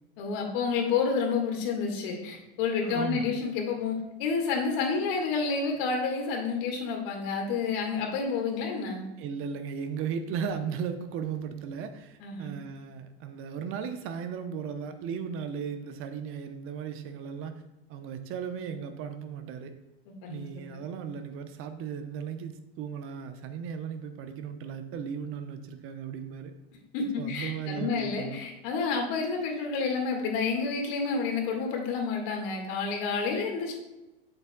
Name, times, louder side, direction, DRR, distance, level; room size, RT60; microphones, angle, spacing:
voice 1, 0.2-9.1 12.2-12.6 20.1-20.8 26.9-33.7, left 5 dB, 60° left, 1 dB, 1.8 m, -29 dB
voice 2, 2.8-3.3 9.2-17.6 17.9-19.7 20.3-26.5 27.2-28.4, right 7 dB, 45° right, 8 dB, 0.8 m, -36 dB
7.5 x 7.4 x 2.3 m, 1.0 s
hypercardioid pair, 90°, 31 cm